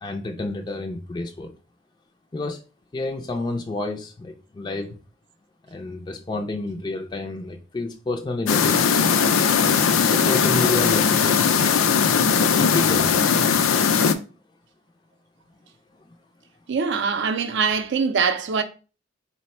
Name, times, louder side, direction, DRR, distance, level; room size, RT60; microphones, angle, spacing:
voice 1, 0.0-1.5 2.3-2.6 2.9-5.0 5.7-8.8 10.1-11.6 12.5-13.1, left 2 dB, 20° left, 0.4 m, -29 dB
sound 1, 8.5-14.1, left 6 dB, 85° left, 0.4 m, -19 dB
voice 2, 16.7-18.6, right 5 dB, 60° right, 0.5 m, -23 dB
4.0 x 2.1 x 4.2 m
head